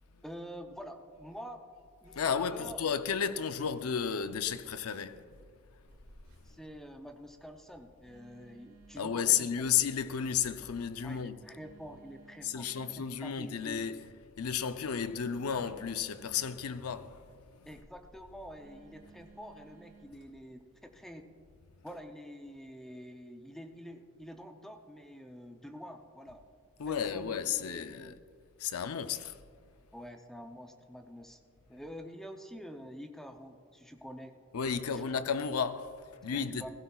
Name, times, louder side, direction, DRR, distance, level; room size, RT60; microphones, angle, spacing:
voice 1, 0.2-1.6 2.0-2.8 6.4-9.6 11.0-13.8 17.7-21.3 21.8-26.4 26.9-28.2 29.9-31.4 31.7-34.4 34.9-35.0 36.3-36.7, equal, ahead, 0.6 m, -47 dB
voice 2, 2.1-5.4 9.0-11.4 12.4-14.0 14.4-17.7 26.8-28.2 28.6-29.4 34.5-36.7, left 7 dB, 85° left, 0.6 m, -33 dB
Telephone, 5.9-20.2, right 4 dB, 70° right, 2.4 m, -60 dB
16.5 x 16.0 x 2.4 m
head